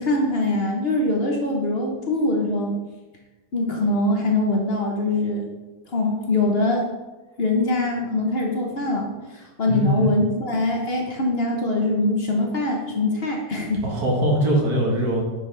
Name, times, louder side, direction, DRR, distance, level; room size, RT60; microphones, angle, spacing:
voice 1, 0.0-2.7 3.5-5.5 5.9-6.8 7.4-9.1 9.3-13.8, left 2 dB, 45° left, 1 dB, 1.1 m, -23 dB
voice 2, 9.7-10.1 13.8-15.2, right 1 dB, 85° right, -1 dB, 2.1 m, -21 dB
9.4 x 5.2 x 3.3 m, 1.2 s
omnidirectional pair, 1.6 m